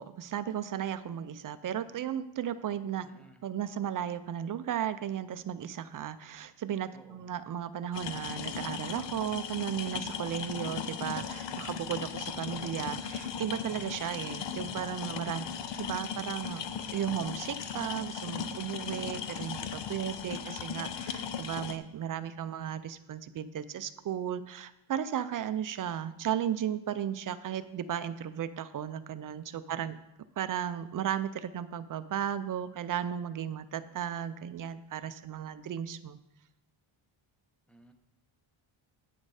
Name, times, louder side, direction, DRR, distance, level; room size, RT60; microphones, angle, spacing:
voice 1, 0.0-3.1 3.4-16.6 16.9-30.0 30.4-36.2, right 9 dB, 45° right, 13 dB, 0.5 m, -35 dB
voice 2, 3.0-3.4 6.9-7.3 29.7-30.0 37.7-37.9, equal, ahead, 6 dB, 0.7 m, -58 dB
sound 1, 7.9-21.8, left 7 dB, 60° left, 0.7 m, -37 dB
8.9 x 6.4 x 4.8 m, 0.88 s
cardioid pair, 125°, 50 cm